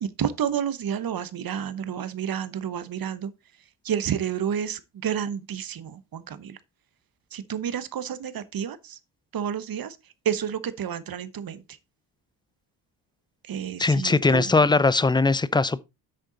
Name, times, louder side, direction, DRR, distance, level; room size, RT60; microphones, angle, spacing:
voice 1, 0.0-3.3 3.8-6.6 7.3-8.9 9.3-10.0 10.2-11.6 13.5-14.5, right 8 dB, 50° right, 1.0 m, -30 dB
voice 2, 13.8-15.8, left 3 dB, 10° left, 0.4 m, -20 dB
8.0 x 6.5 x 3.9 m
cardioid pair, 90°, 44 cm